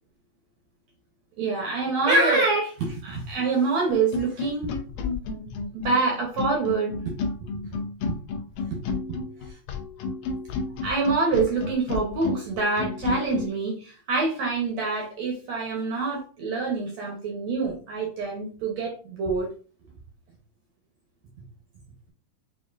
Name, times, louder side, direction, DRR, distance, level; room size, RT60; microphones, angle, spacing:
voice 1, 1.4-4.7 5.7-7.1 8.7-8.8 10.8-19.5, right 3 dB, 70° right, 0 dB, 1.7 m, -26 dB
sound 1, 3.9-13.5, left 4 dB, 85° left, 1.7 m, -31 dB
6.8 x 2.6 x 2.5 m, 0.37 s
omnidirectional pair, 4.1 m